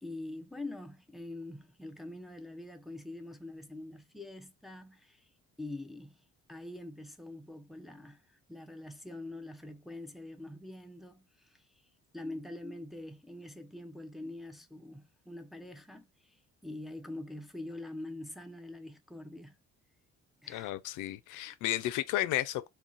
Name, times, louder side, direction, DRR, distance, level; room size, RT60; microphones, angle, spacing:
voice 1, 0.0-5.3 5.6-11.8 12.1-19.6 20.4-20.7 21.3-21.5, left 2 dB, ahead, 0.4 m, -45 dB
voice 2, 20.5-22.7, left 14 dB, 85° left, 0.5 m, -33 dB
2.4 x 2.2 x 3.7 m
cardioid pair, 90°, 30 cm